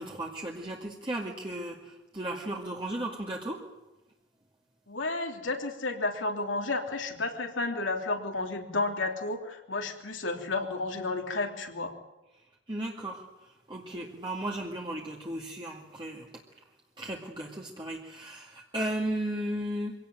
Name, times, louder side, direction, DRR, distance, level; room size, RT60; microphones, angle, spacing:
voice 1, 0.0-3.6 12.7-13.2 13.7-16.3 17.0-19.9, right 1 dB, 25° right, -2 dB, 2.2 m, -35 dB
voice 2, 4.9-11.9, left 3 dB, 80° left, 3 dB, 3.2 m, -32 dB
24.5 x 17.5 x 9.1 m, 1.1 s
head